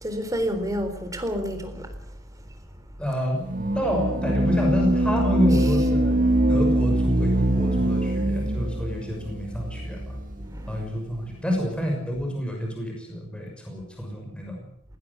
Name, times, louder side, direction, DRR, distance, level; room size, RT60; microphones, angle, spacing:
voice 1, 0.0-1.9 10.4-10.8, equal, 15° right, 7 dB, 3.9 m, -29 dB
voice 2, 3.0-3.4 3.7-6.2 6.5-10.2 10.7-14.7, equal, 5° left, 1 dB, 6.3 m, -28 dB
sound 1, 3.4-10.6, right 1 dB, 40° right, 1.8 m, -23 dB
19.5 x 19.5 x 8.3 m, 0.73 s
head